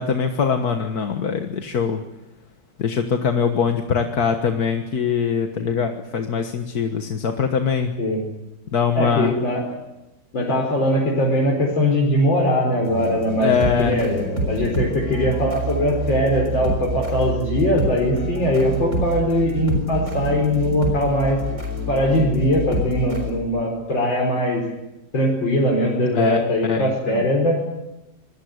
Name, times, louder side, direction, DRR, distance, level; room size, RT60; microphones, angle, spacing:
voice 1, 0.0-2.0 2.8-7.9 8.7-9.3 13.4-14.0 26.1-26.4 26.7-27.2, left 6 dB, 55° left, 5 dB, 1.9 m, -22 dB
voice 2, 9.0-9.8 10.3-21.4 21.9-24.6 25.1-27.5, left 1 dB, 90° left, -2 dB, 5.5 m, -21 dB
sound 1, 12.9-23.3, right 2 dB, 40° right, 6.4 m, -27 dB
26.5 x 22.0 x 8.0 m, 0.97 s
omnidirectional pair, 2.0 m